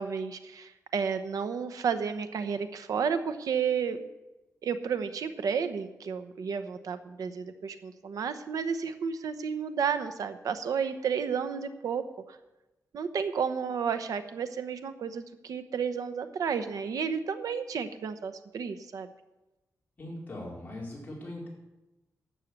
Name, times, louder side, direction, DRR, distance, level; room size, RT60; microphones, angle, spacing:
voice 1, 0.0-4.1 4.6-12.0 12.3-12.4 12.9-19.1, right 6 dB, 85° right, 10 dB, 0.9 m, -32 dB
voice 2, 20.0-21.5, left 1 dB, 25° left, -4 dB, 4.7 m, -40 dB
12.0 x 7.3 x 8.1 m, 1.0 s
wide cardioid pair, 145°, 6 cm